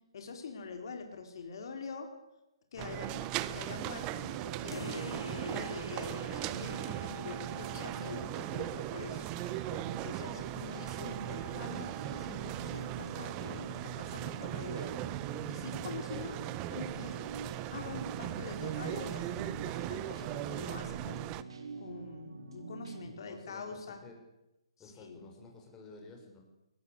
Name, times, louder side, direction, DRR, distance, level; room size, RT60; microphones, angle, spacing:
voice 1, 0.1-2.1 2.7-9.2 9.5-14.9 15.5-16.4 16.7-17.2 17.7-21.4 21.8-24.0 25.0-25.2, left 4 dB, 55° left, 4 dB, 4.2 m, -45 dB
sound 1, 2.8-21.4, right 14 dB, 25° right, 1.1 m, -39 dB
sound 2, 4.2-23.1, right 4 dB, 65° right, 4.4 m, -46 dB
sound 3, 4.7-9.8, left 2 dB, 90° left, 3.1 m, -48 dB
voice 2, 23.0-24.2 24.8-26.4, left 3 dB, 15° left, 0 dB, 6.9 m, -52 dB
22.5 x 22.0 x 8.5 m, 0.94 s
figure-of-eight pair, 135°, 3 cm